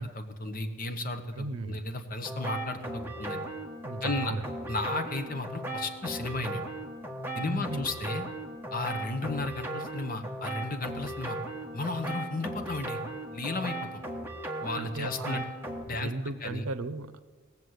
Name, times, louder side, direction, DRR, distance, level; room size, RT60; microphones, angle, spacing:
voice 1, 0.0-3.4 4.0-4.3 4.7-6.6 7.3-8.2 8.7-11.4 11.7-13.0 13.3-14.0 14.6-15.4 15.9-16.6, left 2 dB, 40° left, 7 dB, 1.0 m, -34 dB
voice 2, 1.3-1.8 3.8-4.4 7.3-7.8 14.8-15.4 15.9-17.2, right 2 dB, 85° right, 14 dB, 0.6 m, -36 dB
sound 1, 2.2-15.8, right 1 dB, 10° right, 1.3 m, -37 dB
18.0 x 7.2 x 8.0 m, 1.5 s
head